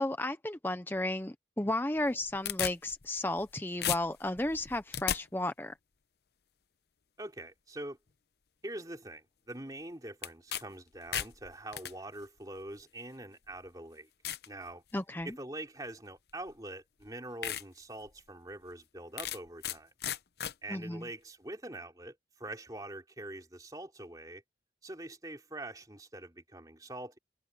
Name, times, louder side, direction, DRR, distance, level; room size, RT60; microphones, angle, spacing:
voice 1, 0.0-5.7 14.9-15.3 20.7-21.0, left 1 dB, 10° left, 0.6 m, -33 dB
sound 1, 2.0-3.5 3.8-5.2 10.2-10.6 10.9-11.9 12.8-12.9 13.5-13.6 14.2-14.5 15.0-15.3 16.5-16.6 17.0-17.1 17.4-17.6 18.1-18.2 19.2-19.8 20.0-20.5, left 10 dB, 65° left, 0.8 m, -35 dB
voice 2, 7.2-8.0 8.6-14.1 14.5-14.8 15.2-19.9 20.6-24.4 24.8-27.2, right 1 dB, 20° right, 3.3 m, -44 dB
head